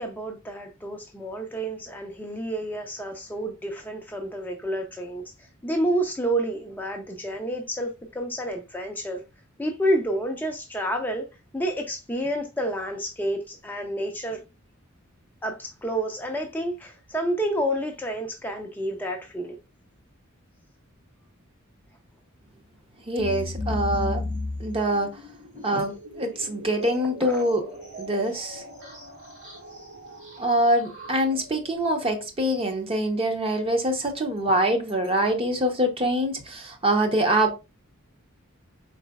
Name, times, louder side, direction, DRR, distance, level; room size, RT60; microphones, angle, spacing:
voice 1, 0.0-5.2 5.6-9.2 9.6-11.2 11.5-14.4 15.4-19.6 25.7-25.8 27.2-27.4, right 1 dB, 10° left, 0.5 m, -29 dB
voice 2, 23.1-24.2 24.6-25.2 25.6-27.6 28.0-28.6 30.4-37.5, right 1 dB, 25° right, 0.8 m, -24 dB
sound 1, 23.2-31.7, left 2 dB, 55° right, 2.5 m, -36 dB
4.8 x 3.9 x 2.3 m
head